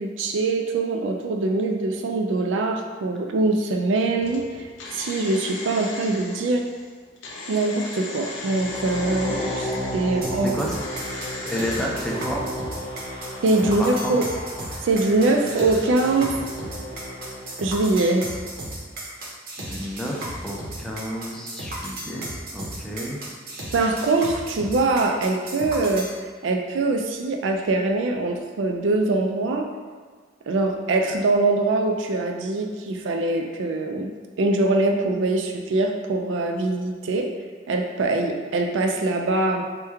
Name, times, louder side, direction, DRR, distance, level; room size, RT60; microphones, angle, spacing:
voice 1, 0.0-6.6 7.5-10.6 13.4-14.2 14.8-16.4 17.6-18.2 23.7-26.1 26.4-29.7 30.5-37.3 37.7-39.6, right 2 dB, 75° right, 3 dB, 0.3 m, -23 dB
sound 1, 4.2-11.9, left 2 dB, 70° left, 0.5 m, -37 dB
sound 2, 8.3-18.4, equal, 90° left, 0.9 m, -34 dB
voice 2, 10.1-10.8 11.4-12.4 13.8-14.1 19.6-22.2 22.5-23.2, equal, 5° left, -4 dB, 0.4 m, -31 dB
sound 3, 10.2-26.1, right 1 dB, 50° right, 0.7 m, -35 dB
3.0 x 2.2 x 3.4 m, 1.5 s
head